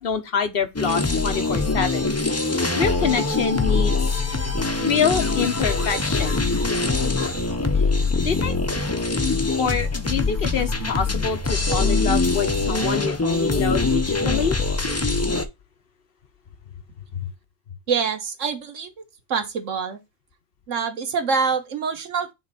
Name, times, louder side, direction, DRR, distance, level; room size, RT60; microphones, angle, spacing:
voice 1, 0.0-2.1 2.5-4.2 4.8-6.4 7.8-7.9 8.2-8.6 9.6-14.6 17.1-17.3, left 6 dB, 50° left, 1.2 m, -26 dB
sound 1, 0.8-15.5, left 3 dB, 20° left, 0.5 m, -23 dB
voice 2, 17.9-18.9 19.3-20.0 20.7-22.3, right 5 dB, 80° right, 1.5 m, -25 dB
7.8 x 3.4 x 4.1 m
omnidirectional pair, 1.3 m